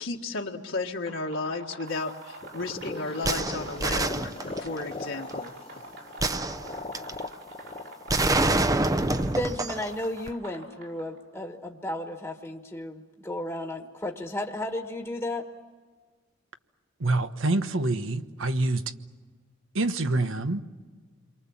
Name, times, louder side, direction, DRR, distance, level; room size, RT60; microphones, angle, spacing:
voice 1, 0.0-5.5, left 3 dB, 70° left, 1.7 m, -33 dB
sound 1, 0.8-11.2, right 2 dB, 65° right, 6.3 m, -46 dB
sound 2, 2.4-9.3, left 3 dB, 30° left, 0.8 m, -40 dB
sound 3, 3.2-4.8 6.2-7.2 8.1-9.9 10.3-10.4, right 2 dB, 20° right, 0.7 m, -26 dB
voice 2, 9.3-15.5, left 1 dB, 10° left, 1.4 m, -33 dB
voice 3, 17.0-18.9 19.7-20.6, right 2 dB, 85° right, 1.2 m, -26 dB
28.5 x 23.5 x 7.3 m
head